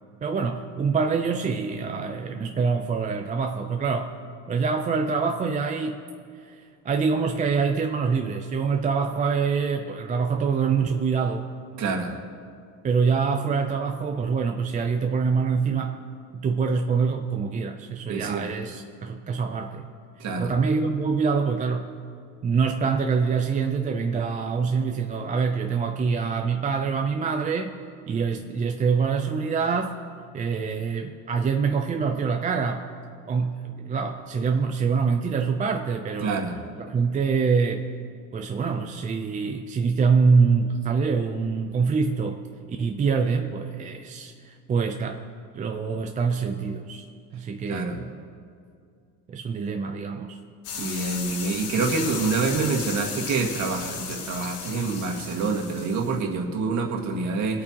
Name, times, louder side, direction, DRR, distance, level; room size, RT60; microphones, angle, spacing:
voice 1, 0.2-4.2 4.5-6.0 6.3-11.5 12.8-16.0 16.3-19.9 20.4-21.9 22.4-27.7 28.1-29.9 30.3-32.9 33.3-36.5 36.8-37.9 38.3-42.4 42.8-45.2 45.5-47.0 47.3-48.1 49.3-50.4, right 5 dB, 20° right, 4 dB, 0.5 m, -25 dB
voice 2, 11.8-12.2 18.1-18.5 20.2-20.5 36.2-36.6 47.7-48.0 50.8-57.6, right 4 dB, 45° right, 1 dB, 1.9 m, -27 dB
sound 1, 50.6-56.2, left 6 dB, 85° left, 2.0 m, -35 dB
24.0 x 8.6 x 2.9 m, 2.3 s
cardioid pair, 140°, 38 cm